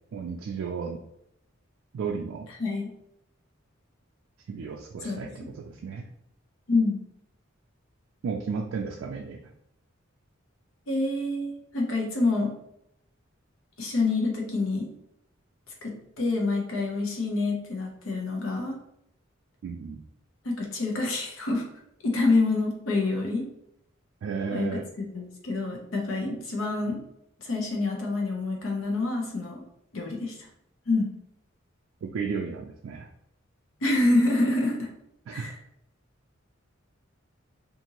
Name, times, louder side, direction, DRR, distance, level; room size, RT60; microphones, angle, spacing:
voice 1, 0.1-1.0 1.9-2.5 4.5-6.1 8.2-9.4 19.6-20.0 24.2-24.9 32.0-33.1 35.3-35.5, right 5 dB, 75° right, 1 dB, 0.3 m, -33 dB
voice 2, 2.6-2.9 5.0-5.2 6.7-7.0 10.9-12.5 13.8-14.9 15.8-18.8 20.4-21.6 22.0-23.5 24.5-24.8 25.1-27.0 27.4-29.6 29.9-30.4 30.9-31.1 33.8-34.9 35.3-35.5, left 2 dB, 80° left, 0 dB, 0.8 m, -27 dB
2.7 x 2.5 x 2.9 m, 0.78 s
head